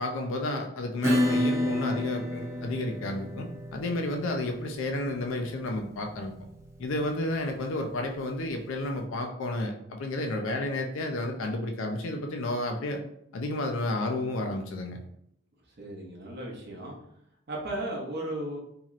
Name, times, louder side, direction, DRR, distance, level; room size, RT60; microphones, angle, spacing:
voice 1, 0.0-6.3 6.8-13.0 13.3-15.0, left 2 dB, 70° left, 3 dB, 0.4 m, -31 dB
Acoustic guitar / Strum, 1.0-8.2, left 1 dB, 15° right, 0.3 m, -31 dB
voice 2, 15.8-16.9 17.5-18.6, right 1 dB, 50° right, -2 dB, 0.7 m, -35 dB
2.9 x 2.8 x 2.4 m, 0.73 s
head